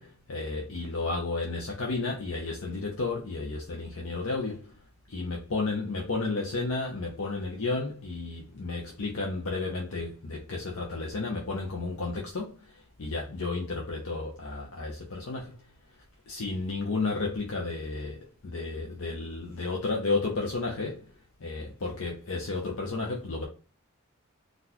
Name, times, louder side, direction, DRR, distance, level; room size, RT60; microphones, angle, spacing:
voice 1, 0.0-4.8 5.1-15.7 16.3-21.1 21.4-23.5, left 3 dB, 75° left, 0.7 m, -32 dB
3.9 x 2.4 x 2.9 m
head